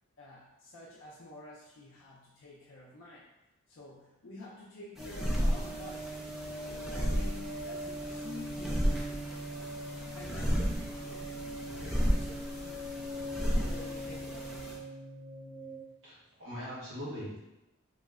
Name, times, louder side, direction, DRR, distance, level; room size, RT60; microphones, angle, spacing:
voice 1, 0.2-3.3 3.7-6.1 6.7-9.3 10.1-11.3 11.7-13.2 13.5-14.6, left 1 dB, 60° left, -5 dB, 0.5 m, -50 dB
sound 1, 5.0-14.8, equal, ahead, 0.4 m, -34 dB
sound 2, 5.0-15.8, right 1 dB, 30° right, 0.7 m, -41 dB
voice 2, 16.0-17.4, equal, 70° right, -8 dB, 1.2 m, -41 dB
3.0 x 2.0 x 3.5 m, 0.95 s
head